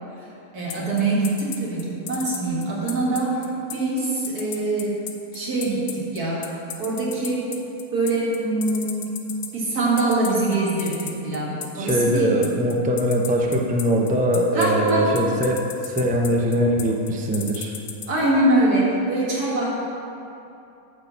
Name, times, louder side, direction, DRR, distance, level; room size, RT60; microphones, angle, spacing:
voice 1, 0.5-3.4 3.7-5.0 5.3-6.4 6.8-7.4 7.9-9.1 9.5-12.3 14.5-15.1 18.1-19.7, right 2 dB, 80° right, -5 dB, 2.4 m, -23 dB
sound 1, 0.7-18.1, left 8 dB, 75° left, 1.3 m, -34 dB
voice 2, 11.7-17.7, equal, 10° right, 0 dB, 0.4 m, -22 dB
9.9 x 4.6 x 7.0 m, 2.8 s
omnidirectional pair, 1.6 m